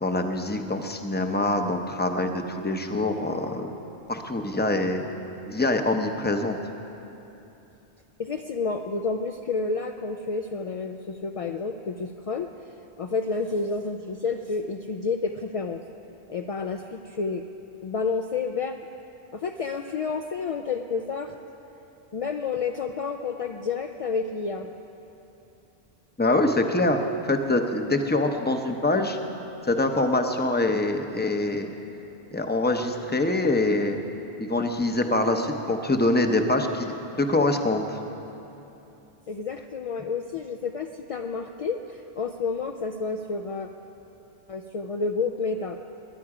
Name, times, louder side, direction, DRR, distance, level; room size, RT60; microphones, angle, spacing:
voice 1, 0.0-3.7 4.1-5.0 5.5-6.6 26.2-29.2 29.7-31.7 32.3-34.0 34.4-38.0, left 2 dB, 10° left, 5 dB, 0.6 m, -24 dB
voice 2, 8.2-12.5 13.0-15.8 16.3-17.4 17.8-18.8 19.3-21.3 22.1-24.7 39.3-43.7 44.5-45.8, left 4 dB, 60° left, 5 dB, 0.3 m, -30 dB
20.5 x 9.9 x 4.9 m, 2.9 s
omnidirectional pair, 1.1 m